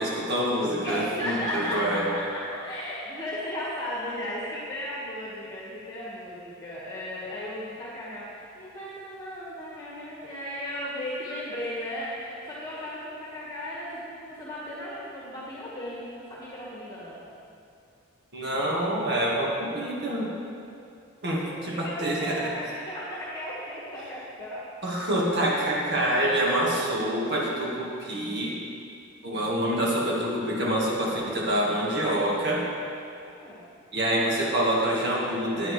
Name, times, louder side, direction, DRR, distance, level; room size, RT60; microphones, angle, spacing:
voice 1, 0.0-2.1 18.3-20.3 21.2-22.5 24.8-28.6 29.2-32.7 33.9-35.7, right 1 dB, 55° right, -4 dB, 1.7 m, -26 dB
voice 2, 0.8-17.2 21.4-24.6 33.3-33.6, equal, 15° left, -7 dB, 1.6 m, -35 dB
12.0 x 9.0 x 3.3 m, 2.5 s
head